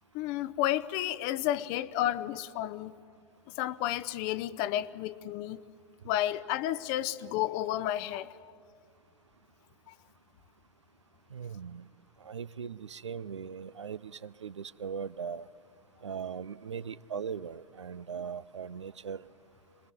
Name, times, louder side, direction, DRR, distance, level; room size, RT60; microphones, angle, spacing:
voice 1, 0.1-2.9 3.6-5.6 6.0-8.3 9.9-10.0, left 13 dB, 40° left, 0.9 m, -31 dB
voice 2, 11.3-11.8 12.2-15.5 16.0-19.2, right 7 dB, 75° right, 0.6 m, -39 dB
26.5 x 21.5 x 9.6 m
figure-of-eight pair, 95°, 15 cm